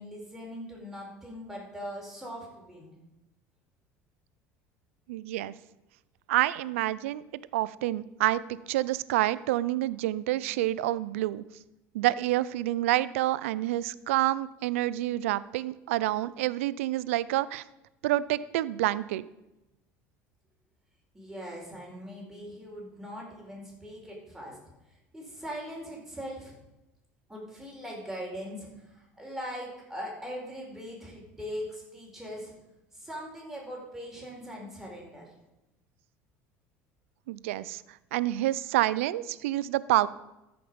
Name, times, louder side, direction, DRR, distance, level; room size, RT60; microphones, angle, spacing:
voice 1, 0.0-3.0 21.1-24.6 25.1-26.5 27.3-32.5 32.9-35.3, equal, 5° right, -3 dB, 4.5 m, -40 dB
voice 2, 5.1-5.5 6.3-7.2 7.5-8.4 8.7-11.4 11.9-17.6 18.0-19.2 37.3-37.8 38.1-40.1, right 15 dB, 85° right, 18 dB, 0.4 m, -28 dB
13.5 x 5.9 x 5.2 m, 0.95 s
hypercardioid pair, 85°, 7 cm